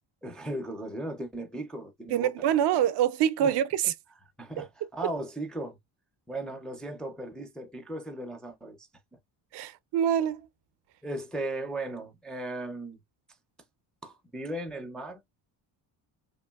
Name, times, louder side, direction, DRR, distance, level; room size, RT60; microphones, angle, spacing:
voice 1, 0.2-2.5 3.4-3.5 4.4-5.8 6.3-8.9 11.0-13.0 14.0-15.2, right 1 dB, ahead, 0.4 m, -37 dB
voice 2, 2.1-3.9 4.6-4.7 9.5-10.5, right 10 dB, 65° right, 0.5 m, -25 dB
2.9 x 2.5 x 2.3 m
cardioid pair, 130°, 44 cm